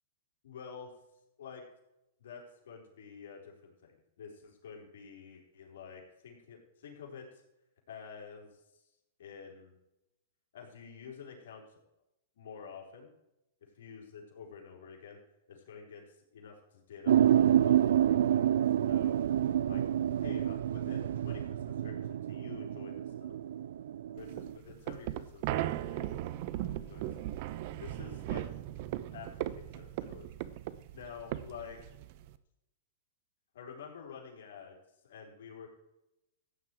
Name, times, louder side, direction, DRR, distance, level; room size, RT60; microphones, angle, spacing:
voice 1, 0.4-0.9 1.4-1.6 2.2-7.4 7.9-8.8 9.2-9.7 10.5-11.6 12.4-13.1 13.8-15.2 15.5-18.6 18.8-19.2 19.7-19.8 20.2-23.3 24.1-26.1 26.6-27.1 27.8-28.5 29.1-30.5 30.9-31.9 33.5-34.8 35.0-35.7, left 6 dB, 75° left, -1 dB, 4.1 m, -49 dB
sound 1, 17.1-24.5, right 10 dB, 75° right, 0.4 m, -28 dB
sound 2, 24.2-32.4, right 14 dB, 50° right, 0.8 m, -38 dB
14.5 x 9.1 x 4.7 m, 0.89 s
hypercardioid pair, 140°, 0 cm